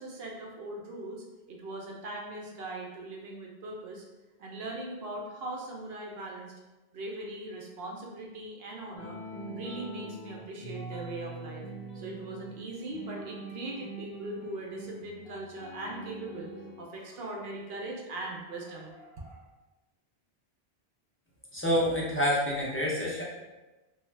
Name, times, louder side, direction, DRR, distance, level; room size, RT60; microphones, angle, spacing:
voice 1, 0.0-4.0 4.4-6.5 6.9-9.2 9.5-11.7 11.9-19.5, right 2 dB, 70° right, -1 dB, 0.9 m, -40 dB
sound 1, 9.0-16.9, right 2 dB, 65° left, 1.0 m, -43 dB
voice 2, 21.5-23.2, equal, 15° left, -6 dB, 0.4 m, -27 dB
2.7 x 2.3 x 3.1 m, 1.1 s
omnidirectional pair, 1.0 m